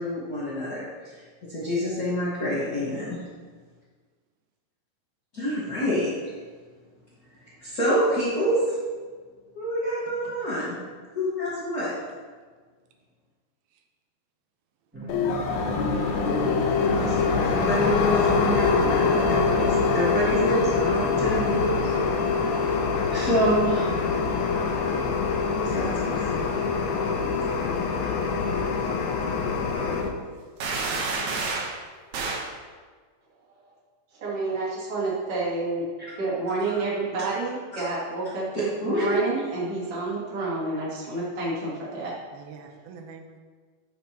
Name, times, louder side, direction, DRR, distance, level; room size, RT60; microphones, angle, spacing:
voice 1, 0.0-3.2 5.3-6.3 7.6-8.7 9.5-10.8 11.1-11.9 16.9-21.8 22.5-22.8 23.1-24.0 25.5-26.4 37.7-37.8 38.8-39.2, equal, 50° left, -9 dB, 1.1 m, -27 dB
voice 2, 2.6-3.1 10.2-10.3 42.3-43.4, right 5 dB, 90° right, 4 dB, 2.6 m, -44 dB
sound 1, 14.9-21.6, right 3 dB, 5° right, 0.9 m, -35 dB
sound 2, 15.1-30.1, left 5 dB, 80° left, 2.6 m, -24 dB
sound 3, 30.6-31.8 32.1-32.5, right 3 dB, 65° right, 2.2 m, -29 dB
voice 3, 34.2-42.1, right 3 dB, 40° right, -6 dB, 2.9 m, -29 dB
12.5 x 6.7 x 2.9 m, 1.5 s
omnidirectional pair, 4.3 m